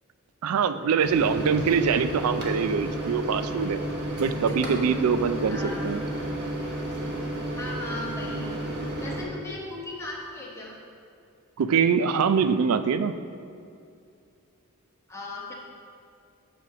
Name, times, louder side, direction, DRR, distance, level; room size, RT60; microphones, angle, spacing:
voice 1, 0.4-3.8 4.2-5.6 5.8-6.0 11.6-13.1, right 6 dB, 80° right, 11 dB, 0.4 m, -23 dB
sound 1, 1.0-10.0, right 1 dB, 25° right, 1.4 m, -46 dB
Microwave oven, 1.0-9.2, right 1 dB, 50° right, 1.2 m, -32 dB
voice 2, 4.3-5.1 5.5-5.9 7.5-8.5 9.0-10.7 15.1-15.5, left 1 dB, 15° left, -4 dB, 1.3 m, -37 dB
7.0 x 5.5 x 5.0 m, 2.4 s
head